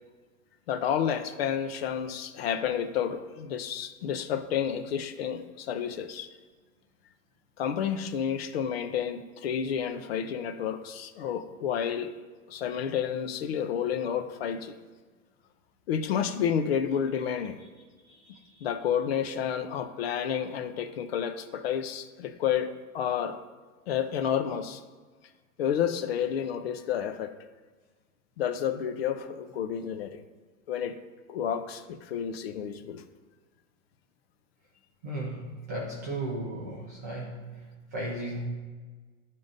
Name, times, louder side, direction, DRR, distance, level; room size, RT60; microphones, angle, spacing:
voice 1, 0.7-6.3 7.6-12.1 12.5-14.7 15.9-17.6 18.6-22.7 22.9-23.4 23.9-24.8 25.6-27.3 28.4-30.2 30.7-31.0 31.3-33.0, left 8 dB, 45° left, 9 dB, 0.6 m, -30 dB
voice 2, 18.1-18.7 35.0-38.5, right 1 dB, 15° right, -6 dB, 0.4 m, -36 dB
10.0 x 3.7 x 3.9 m, 1.4 s
hypercardioid pair, 155°, 43 cm